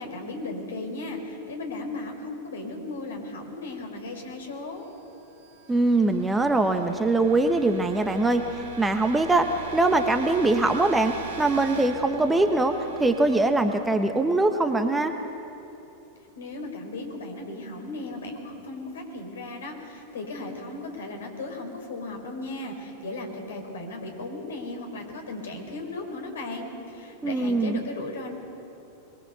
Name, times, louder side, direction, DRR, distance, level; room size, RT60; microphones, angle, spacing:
voice 1, 0.0-4.9 16.3-28.3, left 2 dB, 65° left, 3 dB, 4.4 m, -36 dB
sound 1, 5.0-14.8, right 3 dB, 50° right, 3.0 m, -42 dB
voice 2, 5.7-8.4 8.8-9.5 9.7-15.1 27.2-27.8, right 2 dB, 10° right, 7 dB, 1.2 m, -22 dB
23.0 x 22.0 x 6.9 m, 2.9 s
figure-of-eight pair, 90°, 0 cm